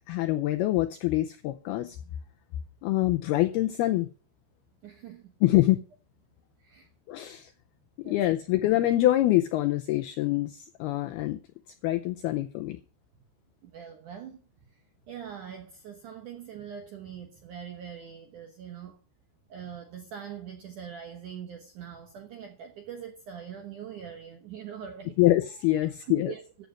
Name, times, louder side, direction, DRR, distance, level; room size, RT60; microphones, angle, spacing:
voice 1, 0.1-2.0 2.8-4.1 5.4-5.8 7.1-7.5 8.1-11.4 11.8-12.8 25.2-26.3, left 16 dB, 85° left, 2.2 m, -25 dB
voice 2, 4.8-5.4 6.6-6.9 8.0-8.3 13.6-19.0 19.5-25.2 26.1-26.7, right 8 dB, 75° right, 1.8 m, -43 dB
14.5 x 6.6 x 6.4 m
omnidirectional pair, 5.2 m